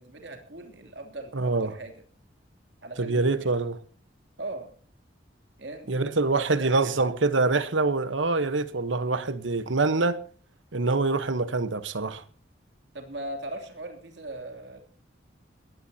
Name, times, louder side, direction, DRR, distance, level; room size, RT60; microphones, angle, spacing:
voice 1, 0.0-1.9 2.8-3.5 4.4-4.7 5.6-5.9 6.3-7.1 12.9-14.8, right 2 dB, 70° right, 3.0 m, -39 dB
voice 2, 1.3-1.7 3.0-3.8 5.9-10.2 10.7-12.2, right 3 dB, 85° right, 1.1 m, -25 dB
21.5 x 17.0 x 2.8 m
head